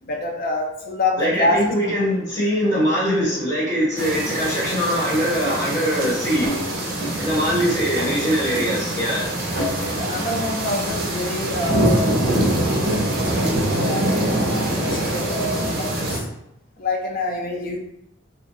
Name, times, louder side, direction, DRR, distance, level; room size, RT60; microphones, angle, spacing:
voice 1, 0.0-1.7 9.5-12.2 12.9-16.3 16.8-17.8, left 2 dB, 45° left, 0 dB, 0.4 m, -26 dB
voice 2, 1.2-6.6 7.2-9.3, equal, 15° left, -11 dB, 1.1 m, -22 dB
sound 1, 4.0-16.2, right 1 dB, 50° right, 0.5 m, -24 dB
sound 2, 5.4-7.2 7.6-8.2 8.5-8.8 9.2-9.3 9.6-9.7 10.1-10.2, right 1 dB, 65° left, 1.3 m, -31 dB
2.4 x 2.2 x 2.7 m, 0.78 s
head